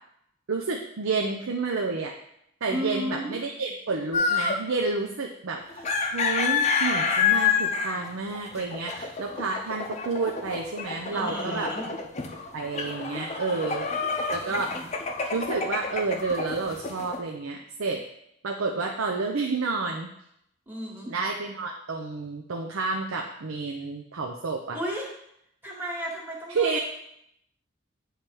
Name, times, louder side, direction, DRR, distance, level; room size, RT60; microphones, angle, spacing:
voice 1, 0.5-2.1 2.6-5.9 6.1-11.9 12.5-13.9 14.3-14.7 15.3-18.0 18.4-20.1 21.1-24.8 26.5-26.8, right 4 dB, 85° right, 1 dB, 0.6 m, -30 dB
voice 2, 2.7-3.4 11.1-11.8 13.9-14.0 14.5-14.9 20.7-21.1 24.7-25.1 25.6-26.8, equal, 10° right, -2 dB, 1.4 m, -34 dB
sound 1, 4.1-4.7 5.7-17.2, left 5 dB, 35° left, 0.6 m, -28 dB
9.1 x 3.3 x 4.5 m, 0.75 s
head